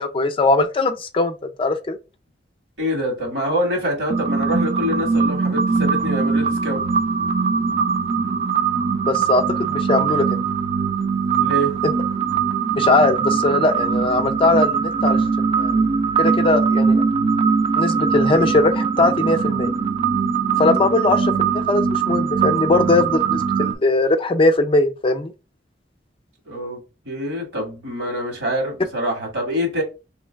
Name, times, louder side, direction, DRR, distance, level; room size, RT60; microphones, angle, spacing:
voice 1, 0.0-2.0 9.1-10.4 11.8-11.9 12.8-15.2 15.5-15.7 16.2-17.0 17.8-19.7 20.6-25.3, left 2 dB, 30° left, 0.4 m, -20 dB
voice 2, 2.8-6.8 11.4-11.8 26.5-26.8 27.1-29.8, equal, 85° right, 1.9 m, -25 dB
sound 1, 4.1-23.7, right 5 dB, 35° right, 0.4 m, -21 dB
3.1 x 2.9 x 3.4 m
head